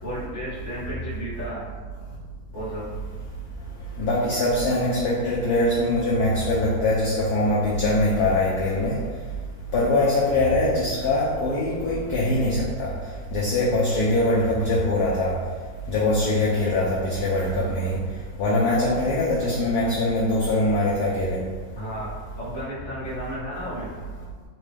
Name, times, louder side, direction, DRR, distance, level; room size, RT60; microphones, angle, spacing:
voice 1, 0.0-1.7 2.5-2.9 21.7-23.9, equal, 10° left, -11 dB, 0.9 m, -33 dB
voice 2, 4.0-9.0 9.7-12.9 13.3-15.3 15.9-18.0 18.4-21.4, left 1 dB, 75° left, -6 dB, 0.9 m, -22 dB
4.0 x 2.2 x 3.2 m, 1.5 s
omnidirectional pair, 2.2 m